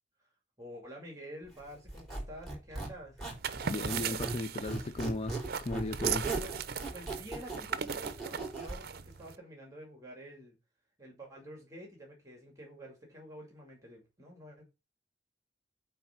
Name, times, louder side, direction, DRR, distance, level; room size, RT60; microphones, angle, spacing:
voice 1, 0.6-3.2 6.4-6.5 6.9-10.5 11.0-14.6, equal, 20° right, 2.3 m, -49 dB
Squeak, 1.9-4.4 4.7-8.8, right 3 dB, ahead, 4.0 m, -37 dB
sound 1, 3.3-9.4, right 7 dB, 60° right, 0.6 m, -38 dB
voice 2, 3.7-6.3, left 2 dB, 35° left, 0.5 m, -36 dB
8.8 x 3.4 x 5.8 m
head